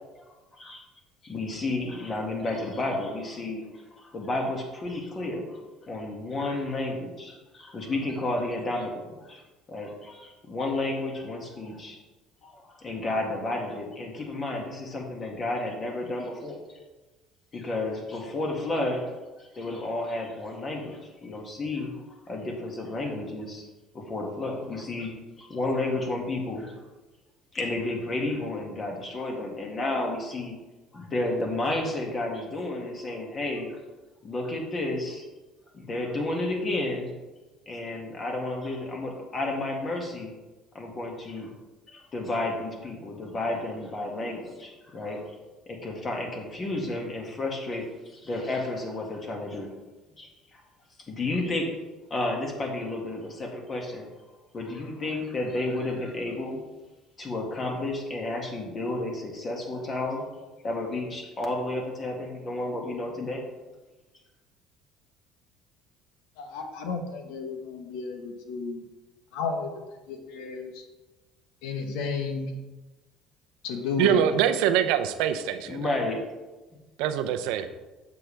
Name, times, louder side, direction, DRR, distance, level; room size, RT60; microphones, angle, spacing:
voice 1, 1.2-3.7 4.0-5.6 5.8-9.4 9.7-12.0 12.4-16.6 17.5-19.1 19.4-23.7 23.9-25.1 25.4-26.7 27.5-30.5 30.9-33.8 34.2-35.2 35.7-37.1 37.7-40.3 40.7-41.5 41.9-45.2 45.7-49.7 50.2-50.6 51.1-51.7 52.1-54.1 54.5-56.6 57.2-60.2 60.6-63.4 75.7-76.2, left 2 dB, 35° left, 0 dB, 2.0 m, -31 dB
voice 2, 66.4-68.8 69.3-69.8 70.1-70.8 71.6-72.5 73.6-74.4, left 5 dB, 80° left, 4 dB, 1.1 m, -32 dB
voice 3, 74.0-75.9 77.0-77.7, right 10 dB, 80° right, 9 dB, 0.6 m, -24 dB
7.6 x 7.3 x 3.4 m, 1.2 s
supercardioid pair, 100°, 0 cm